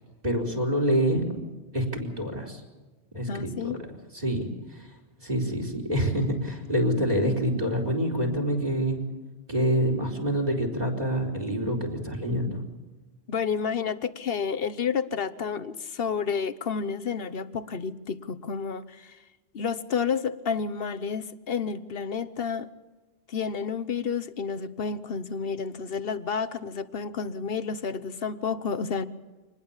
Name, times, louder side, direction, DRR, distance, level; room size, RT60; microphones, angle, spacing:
voice 1, 0.2-1.3 1.7-2.6 3.1-3.7 4.1-4.9 5.2-9.0 9.5-12.6, equal, 35° right, 4.6 m, -26 dB
voice 2, 3.3-3.8 13.3-19.2 19.5-22.7 23.3-29.1, left 6 dB, 55° left, 1.2 m, -30 dB
26.0 x 20.0 x 7.3 m
omnidirectional pair, 1.2 m